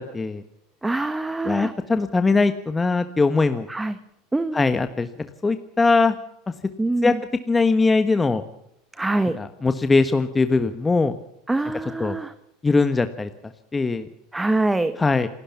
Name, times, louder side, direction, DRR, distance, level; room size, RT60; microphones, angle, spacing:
voice 1, 0.8-1.7 3.7-4.0 4.3-4.7 6.8-7.2 8.9-9.4 11.5-12.3 14.3-15.0, right 2 dB, 10° right, 12 dB, 1.2 m, -24 dB
voice 2, 1.4-3.7 4.5-6.1 7.0-7.1 7.5-8.4 9.4-11.1 12.0-12.2 12.6-13.3 13.7-14.1 15.0-15.3, left 3 dB, 15° left, 9 dB, 1.3 m, -21 dB
27.5 x 13.0 x 7.3 m, 0.82 s
hypercardioid pair, 95°, 0 cm